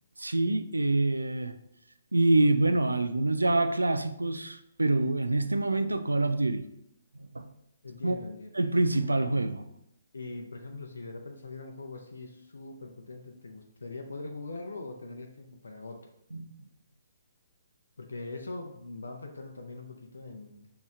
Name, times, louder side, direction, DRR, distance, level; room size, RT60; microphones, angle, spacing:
voice 1, 0.2-1.6 2.1-6.7 7.2-7.5 8.0-8.2 8.6-9.6 16.3-16.5, right 2 dB, 75° right, 0.3 m, -26 dB
voice 2, 7.8-8.6 10.1-16.1 18.0-20.7, left 3 dB, 65° left, 0.5 m, -42 dB
6.1 x 3.1 x 2.4 m
figure-of-eight pair, 130°, 0 cm